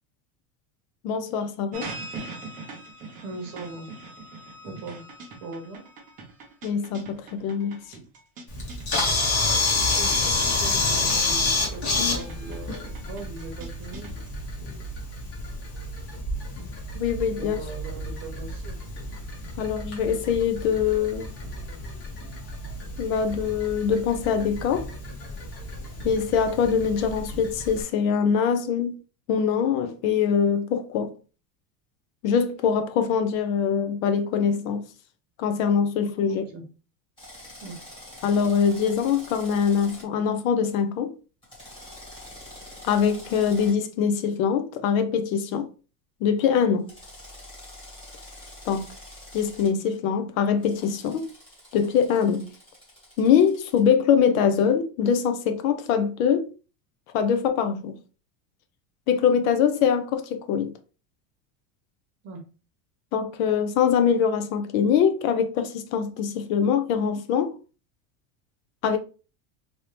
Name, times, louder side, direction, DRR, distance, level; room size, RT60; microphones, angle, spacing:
voice 1, 1.0-1.9 6.6-7.8 16.9-17.6 19.6-21.3 23.0-24.9 26.0-29.0 29.3-31.1 32.2-34.9 35.4-36.5 38.2-41.1 42.8-45.7 46.2-46.9 48.7-48.9 49.3-51.2 51.7-52.5 53.2-56.5 57.1-58.0 59.1-60.7 63.1-67.5 68.8-69.0, left 7 dB, 65° left, 0.7 m, -23 dB
sound 1, 1.7-14.4, right 3 dB, 20° right, 0.5 m, -42 dB
voice 2, 3.2-3.9 4.6-5.0 5.4-5.9 9.7-14.1 17.3-18.8 36.3-36.7 37.6-37.9 62.2-62.4, right 3 dB, 35° right, 0.9 m, -40 dB
Camera, 8.5-27.8, left 3 dB, 35° left, 1.1 m, -29 dB
Drill, 37.2-40.1 41.4-43.7 46.9-49.7 50.6-53.8, left 1 dB, 10° left, 1.5 m, -46 dB
3.0 x 2.7 x 3.2 m
cardioid pair, 170°, 43 cm